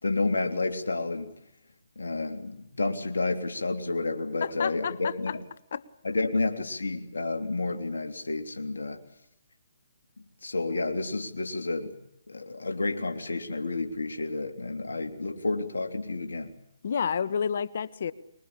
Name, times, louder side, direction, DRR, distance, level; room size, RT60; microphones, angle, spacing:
voice 1, 0.0-1.3 1.9-5.4 6.0-9.0 10.4-11.9 12.3-16.5, left 3 dB, 85° left, 5 dB, 3.3 m, -30 dB
voice 2, 4.4-5.3 5.7-5.8 16.8-18.1, left 7 dB, 60° left, 16 dB, 1.5 m, -30 dB
25.5 x 22.5 x 8.6 m, 0.78 s
hypercardioid pair, 145°, 0 cm